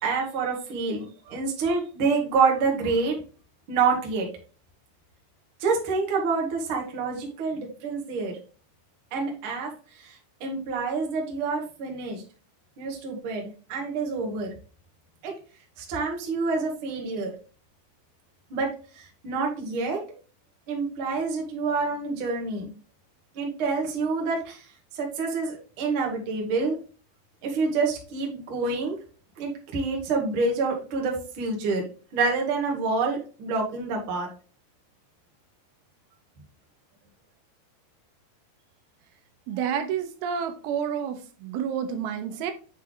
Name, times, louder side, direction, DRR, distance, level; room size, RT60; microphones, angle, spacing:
voice 1, 0.0-3.2 3.7-4.3 5.6-8.3 9.1-9.7 10.0-10.1 10.4-12.2 12.8-14.5 15.2-15.3 15.8-17.3 18.5-18.7 19.2-20.0 20.7-22.7 23.3-24.6 24.9-26.8 27.4-29.0 29.4-31.8 32.1-34.3, right 4 dB, 55° right, 0 dB, 1.6 m, -27 dB
voice 2, 39.5-42.5, right 8 dB, 85° right, 8 dB, 2.6 m, -29 dB
7.9 x 3.3 x 3.7 m, 0.37 s
omnidirectional pair, 4.3 m